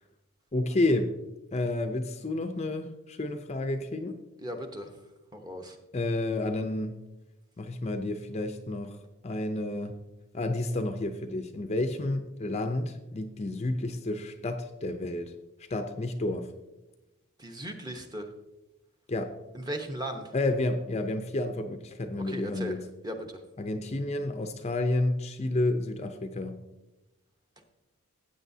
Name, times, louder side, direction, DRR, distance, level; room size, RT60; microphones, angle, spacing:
voice 1, 0.5-1.2 1.5-4.2 5.9-7.0 7.6-9.0 9.2-10.0 10.3-15.3 15.7-16.5 19.1-19.4 20.3-22.8 23.6-26.6, left 2 dB, 30° left, 7 dB, 0.5 m, -30 dB
voice 2, 4.4-4.9 5.3-5.8 17.4-18.3 19.5-20.3 22.2-22.7 23.0-23.4, right 1 dB, 20° right, 4 dB, 1.0 m, -37 dB
15.0 x 8.6 x 2.7 m, 0.99 s
head